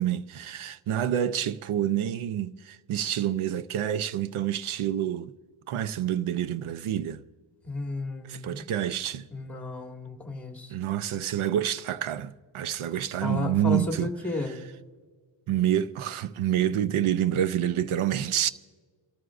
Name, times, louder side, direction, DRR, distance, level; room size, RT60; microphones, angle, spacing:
voice 1, 0.0-5.3 5.7-7.2 8.3-9.3 10.7-14.1 15.5-18.5, right 10 dB, 85° right, 0.7 m, -28 dB
voice 2, 7.6-8.7 9.3-10.7 13.2-14.6, left 2 dB, 5° left, 2.0 m, -33 dB
27.0 x 14.0 x 2.5 m
wide cardioid pair, 135°, 48 cm